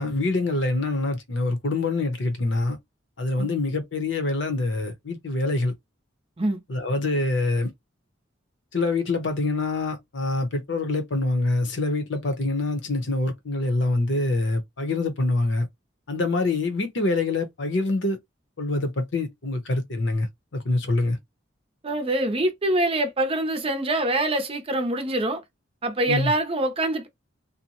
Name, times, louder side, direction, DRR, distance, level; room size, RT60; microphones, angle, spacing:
voice 1, 0.0-2.8 3.2-5.7 6.7-7.7 8.7-15.7 16.1-18.2 18.6-20.3 20.5-21.2 26.1-26.3, left 2 dB, 70° left, 0.8 m, -25 dB
voice 2, 21.8-25.4 25.8-27.1, right 1 dB, 30° right, 0.6 m, -25 dB
2.6 x 2.1 x 2.8 m
head